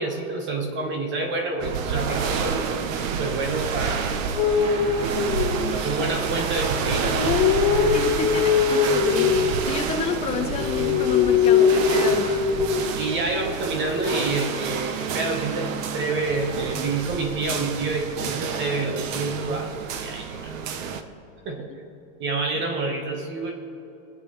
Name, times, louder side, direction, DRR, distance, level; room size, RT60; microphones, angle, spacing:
voice 1, 0.0-2.6 3.0-4.2 5.7-7.4 12.9-20.9 21.4-21.7 22.2-23.5, right 3 dB, 30° right, 3 dB, 1.1 m, -28 dB
sound 1, 1.6-21.0, right 6 dB, 90° right, 1.0 m, -29 dB
sound 2, 4.4-6.1 6.9-9.5 10.4-13.0 14.0-14.6, left 7 dB, 65° left, 1.5 m, -22 dB
voice 2, 7.9-12.5 13.3-13.4, left 6 dB, 15° left, 5 dB, 0.5 m, -30 dB
23.0 x 8.0 x 3.1 m, 2.9 s
supercardioid pair, 160°, 38 cm